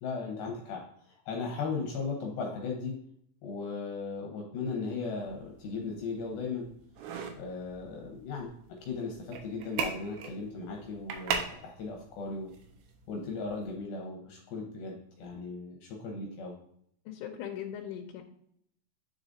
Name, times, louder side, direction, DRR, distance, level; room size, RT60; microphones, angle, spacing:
voice 1, 0.0-3.0 3.4-6.7 7.4-8.5 8.8-12.5 13.1-16.5, left 4 dB, 75° left, 0 dB, 2.5 m, -37 dB
sound 1, 4.9-13.8, right 5 dB, 80° right, 2.6 m, -40 dB
voice 2, 17.1-18.2, left 9 dB, 90° left, 1 dB, 2.7 m, -39 dB
9.1 x 4.9 x 2.6 m, 0.69 s
omnidirectional pair, 4.7 m